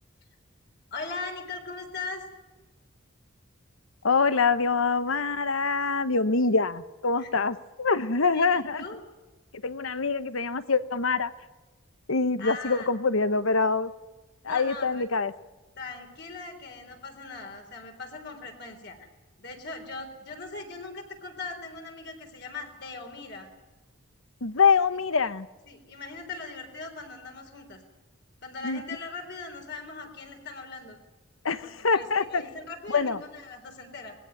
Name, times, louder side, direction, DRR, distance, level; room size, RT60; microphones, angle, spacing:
voice 1, 0.9-2.3 7.2-7.3 8.0-9.0 12.4-12.9 14.4-15.1 15.8-19.1 19.4-23.5 25.7-27.8 28.4-31.0 31.6-34.2, left 3 dB, 50° left, 3 dB, 3.9 m, -40 dB
voice 2, 4.0-8.8 9.6-11.3 12.1-13.9 14.4-15.3 24.4-25.5 28.6-28.8 31.4-32.4 32.9-33.2, left 4 dB, 80° left, 13 dB, 1.1 m, -25 dB
21.0 x 16.5 x 9.3 m, 1.2 s
head